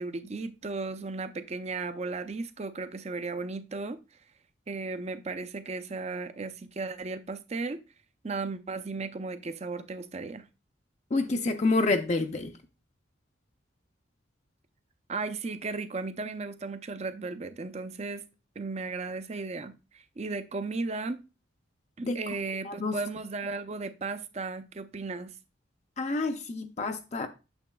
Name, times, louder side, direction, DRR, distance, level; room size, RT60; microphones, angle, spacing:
voice 1, 0.0-4.0 4.7-7.8 8.2-10.4 15.1-18.2 18.6-21.2 22.0-25.3, right 3 dB, 35° right, 0.5 m, -35 dB
voice 2, 11.1-12.5 22.0-22.2 22.7-23.0 26.0-27.3, left 3 dB, 35° left, 0.5 m, -28 dB
8.8 x 6.9 x 2.3 m
head